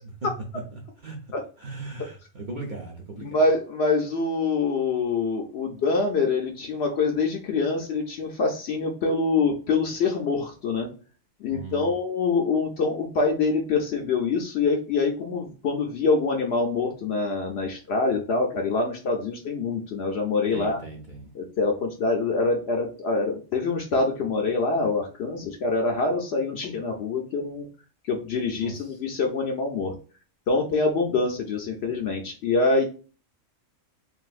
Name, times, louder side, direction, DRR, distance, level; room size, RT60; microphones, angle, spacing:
voice 1, 0.7-1.3 1.6-3.4 11.5-11.9 20.5-21.3 28.6-29.0, right 3 dB, 55° right, -1 dB, 0.6 m, -38 dB
voice 2, 3.2-10.9 11.4-20.8 21.3-27.7 28.1-30.0 30.5-32.8, left 3 dB, 65° left, 2 dB, 0.7 m, -25 dB
3.3 x 2.5 x 2.4 m, 0.37 s
omnidirectional pair, 1.4 m